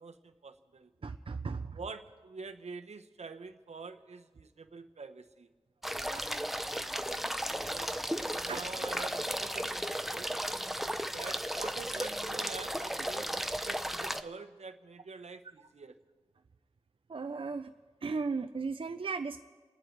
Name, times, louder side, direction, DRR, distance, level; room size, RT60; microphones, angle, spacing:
voice 1, 0.0-0.9 1.7-5.5 7.5-10.3 11.1-15.9, right 4 dB, 75° right, 7 dB, 0.9 m, -46 dB
voice 2, 1.0-1.8 6.1-6.4 8.5-8.7 17.1-17.7 18.0-19.4, right 4 dB, 50° right, 8 dB, 0.5 m, -36 dB
sound 1, 5.8-14.2, equal, ahead, 0.7 m, -35 dB
29.0 x 10.5 x 4.6 m, 1.4 s
wide cardioid pair, 70°, 11 cm